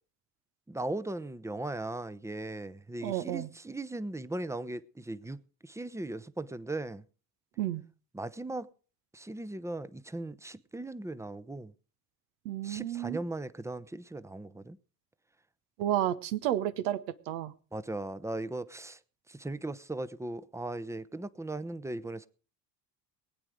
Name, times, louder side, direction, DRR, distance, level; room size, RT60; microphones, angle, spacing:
voice 1, 0.7-7.0 8.1-8.7 9.1-11.7 12.6-14.8 17.7-19.0 19.3-22.3, right 2 dB, 5° right, 0.7 m, -38 dB
voice 2, 3.0-3.5 7.6-7.8 12.4-13.2 15.8-17.0 17.3-17.5, right 12 dB, 75° right, 1.0 m, -31 dB
20.0 x 9.1 x 4.9 m
hypercardioid pair, 60°, 47 cm